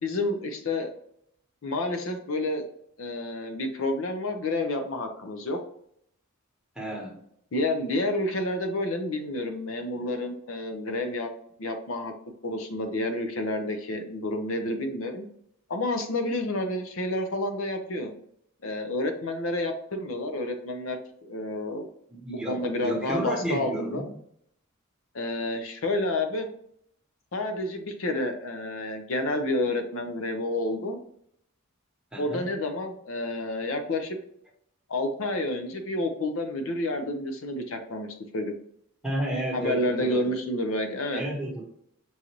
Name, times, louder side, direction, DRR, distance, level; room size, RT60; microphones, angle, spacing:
voice 1, 0.0-0.9 1.6-2.6 3.0-5.6 7.5-11.3 11.6-12.1 12.4-15.3 15.7-18.1 18.6-21.0 21.2-21.9 22.3-24.1 25.1-26.5 27.3-31.0 32.2-34.2 34.9-38.1 38.3-38.5 39.5-41.2, left 1 dB, 70° left, 6 dB, 0.6 m, -29 dB
voice 2, 6.8-7.3 22.1-24.1 32.1-32.5 39.0-40.3 41.1-41.6, right 1 dB, 5° right, -3 dB, 1.0 m, -32 dB
5.5 x 2.5 x 2.9 m, 0.69 s
head